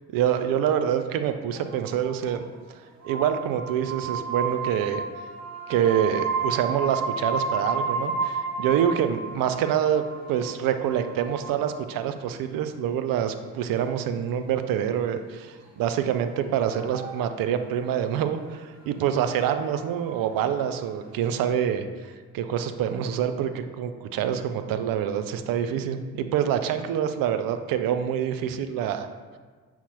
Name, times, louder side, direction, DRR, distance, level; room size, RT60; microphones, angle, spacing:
voice 1, 0.1-2.4 3.0-5.0 5.7-10.0 10.3-29.1, right 9 dB, 60° right, 9 dB, 0.5 m, -26 dB
sound 1, 1.5-2.4 3.0-11.8 13.8-13.9 16.2-17.7 18.1-18.2 18.4-18.9 19.5-21.1, right 4 dB, 45° right, 1.1 m, -32 dB
5.8 x 2.1 x 4.2 m, 1.5 s
hypercardioid pair, 45°, 40 cm